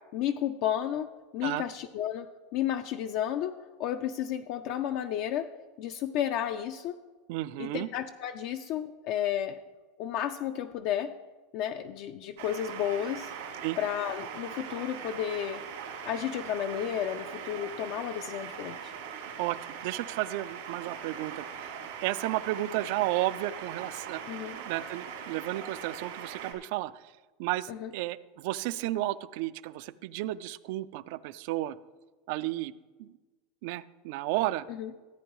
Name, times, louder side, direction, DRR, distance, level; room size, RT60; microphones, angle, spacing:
voice 1, 0.1-5.5 5.8-7.0 7.6-9.6 10.0-11.1 11.5-13.3 13.8-15.6 16.0-18.9 24.3-24.5 27.7-27.9 34.7-34.9, left 10 dB, 50° left, 8 dB, 0.4 m, -32 dB
voice 2, 7.3-7.9 13.6-13.8 19.4-24.2 24.5-27.1 27.4-31.8 32.3-32.7 33.0-33.1 33.6-34.7, right 16 dB, 60° right, 16 dB, 0.3 m, -33 dB
sound 1, 12.4-26.5, right 7 dB, 90° right, 2.3 m, -41 dB
14.5 x 8.6 x 3.1 m, 1.3 s
supercardioid pair, 155°, 0 cm